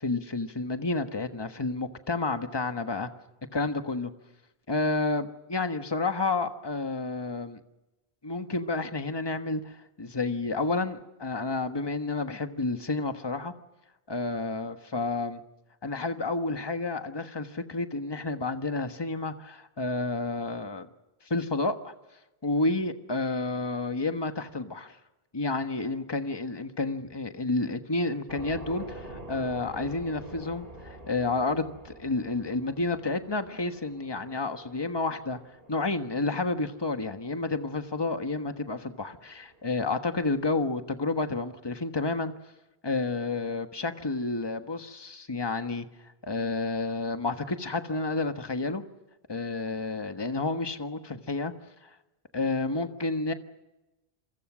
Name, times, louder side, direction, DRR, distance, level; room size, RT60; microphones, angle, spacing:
voice 1, 0.0-3.1 3.5-4.1 4.7-7.6 8.2-13.5 14.1-15.4 15.8-20.9 21.3-21.9 22.4-25.0 25.3-35.4 35.7-42.3 42.8-45.9 46.2-48.8 49.3-51.5 52.3-53.3, left 3 dB, 25° left, 7 dB, 1.4 m, -30 dB
sound 1, 28.3-40.2, right 1 dB, 65° right, 3.8 m, -47 dB
28.0 x 23.5 x 6.2 m, 1.0 s
omnidirectional pair, 1.0 m